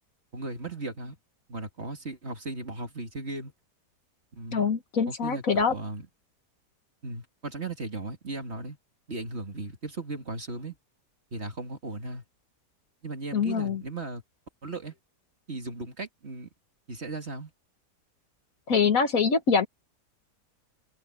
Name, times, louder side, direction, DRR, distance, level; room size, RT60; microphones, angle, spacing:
voice 1, 0.3-1.2 1.5-3.5 4.3-4.7 5.1-6.1 7.0-8.8 9.1-10.8 11.3-12.2 13.0-14.2 14.6-14.9 15.5-16.5 16.9-17.5, right 2 dB, 40° right, 2.5 m, -37 dB
voice 2, 4.5-5.7 13.3-13.8 18.7-19.7, left 5 dB, 55° left, 1.7 m, -24 dB
open air
omnidirectional pair, 1.8 m